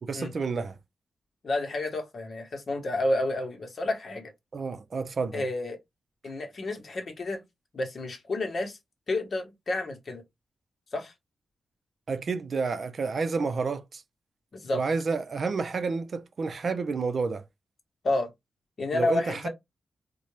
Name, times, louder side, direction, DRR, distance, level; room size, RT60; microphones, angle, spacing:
voice 1, 0.0-0.8 4.5-5.4 12.1-14.0 14.7-17.4 18.9-19.5, right 4 dB, 55° right, 0.6 m, -30 dB
voice 2, 1.4-4.3 5.3-5.8 6.2-7.4 7.7-8.8 9.1-10.2 10.9-11.1 14.5-14.8 18.0-18.3 18.8-19.5, left 2 dB, 50° left, 1.1 m, -30 dB
4.2 x 2.3 x 3.2 m
wide cardioid pair, 110°, 0 cm